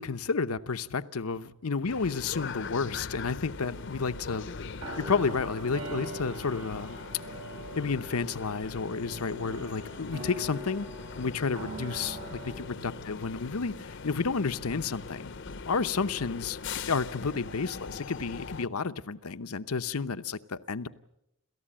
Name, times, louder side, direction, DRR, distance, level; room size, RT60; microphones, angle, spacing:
voice 1, 0.0-4.5 5.0-7.0 7.8-10.9 11.2-15.3 15.7-16.6 16.9-20.9, left 4 dB, 85° left, 12 dB, 0.8 m, -31 dB
sound 1, 1.9-18.7, left 4 dB, 55° left, 0.7 m, -41 dB
sound 2, 4.7-13.2, right 1 dB, 85° right, 5.8 m, -42 dB
29.0 x 14.0 x 8.8 m, 0.86 s
head